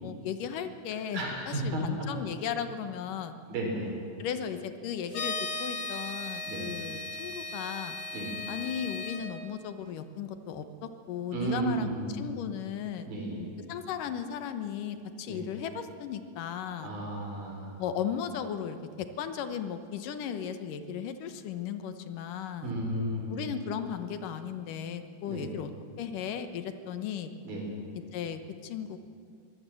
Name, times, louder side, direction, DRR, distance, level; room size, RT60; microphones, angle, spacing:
voice 1, 0.0-3.4 4.2-8.0 8.5-13.1 13.7-16.9 17.8-22.7 23.3-25.7 26.0-27.4 28.1-29.0, left 8 dB, 75° left, 10 dB, 2.6 m, -36 dB
voice 2, 1.1-2.1 3.5-3.9 6.5-6.7 8.1-8.3 11.3-12.2 13.1-13.5 15.3-15.4 16.8-17.8 22.6-23.4 25.2-25.5 27.4-27.7, right 1 dB, 85° right, -1 dB, 6.4 m, -33 dB
sound 1, 5.1-9.2, left 3 dB, 55° left, 4.3 m, -37 dB
23.5 x 17.5 x 7.7 m, 2.2 s
omnidirectional pair, 4.0 m